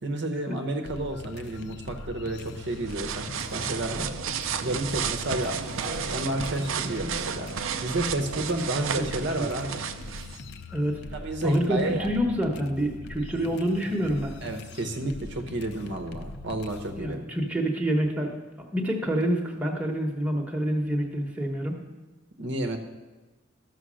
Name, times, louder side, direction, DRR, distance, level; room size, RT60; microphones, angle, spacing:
voice 1, 0.0-4.1 4.6-7.5 7.8-9.8 11.1-12.1 14.4-17.3 22.4-22.8, right 1 dB, 55° right, 5 dB, 0.9 m, -31 dB
sound 1, 0.8-17.1, left 3 dB, 55° left, 0.6 m, -42 dB
sound 2, 2.6-10.4, right 7 dB, 75° right, 0.6 m, -33 dB
voice 2, 11.4-14.3 17.0-18.3 18.7-21.8, equal, 5° right, 0 dB, 1.1 m, -27 dB
12.5 x 6.5 x 6.3 m, 1.2 s
head